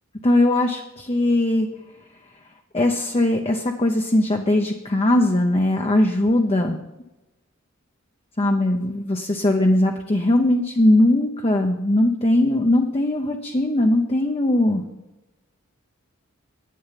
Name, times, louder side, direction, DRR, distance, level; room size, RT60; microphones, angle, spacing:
voice 1, 0.2-1.7 2.7-6.8 8.4-14.8, left 1 dB, 25° left, 3 dB, 0.8 m, -20 dB
11.0 x 9.4 x 5.8 m, 1.0 s
head